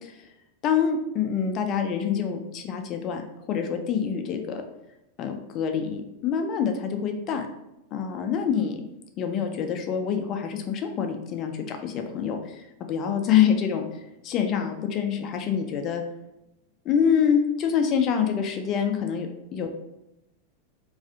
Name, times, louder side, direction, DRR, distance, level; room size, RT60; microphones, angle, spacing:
voice 1, 0.6-3.2 3.5-4.6 5.2-7.5 7.9-8.7 9.2-13.9 14.2-16.0 16.9-19.7, left 7 dB, 35° left, 5 dB, 0.3 m, -26 dB
2.4 x 2.4 x 2.4 m, 0.89 s
figure-of-eight pair, 90°, 0 cm